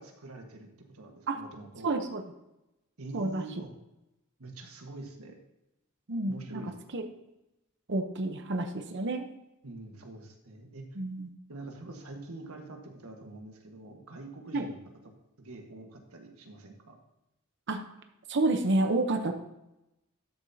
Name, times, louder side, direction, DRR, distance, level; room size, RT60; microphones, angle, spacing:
voice 1, 0.0-1.9 3.0-3.7 4.4-5.4 6.3-6.7 9.6-10.8 11.5-14.8 15.4-17.0, right 2 dB, 90° right, 3 dB, 1.6 m, -45 dB
voice 2, 1.8-2.2 3.1-3.7 6.1-6.6 6.9-7.0 7.9-9.2 11.0-11.3 14.5-14.7 17.7-17.8 18.3-19.3, right 2 dB, 55° right, 6 dB, 0.9 m, -29 dB
12.5 x 6.9 x 2.8 m, 0.92 s
head